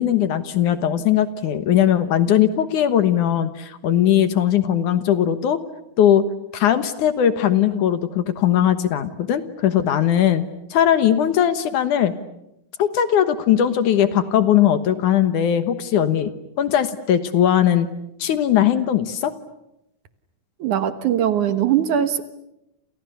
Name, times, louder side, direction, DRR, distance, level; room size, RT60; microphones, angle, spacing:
voice 1, 0.0-5.6 6.0-6.3 6.5-10.4 10.7-12.1 12.8-16.3 16.6-17.9 18.2-19.3, left 10 dB, 65° left, 11 dB, 2.5 m, -19 dB
voice 2, 20.6-22.2, right 10 dB, 65° right, 10 dB, 2.5 m, -20 dB
29.5 x 29.0 x 6.9 m, 0.85 s
omnidirectional pair, 4.2 m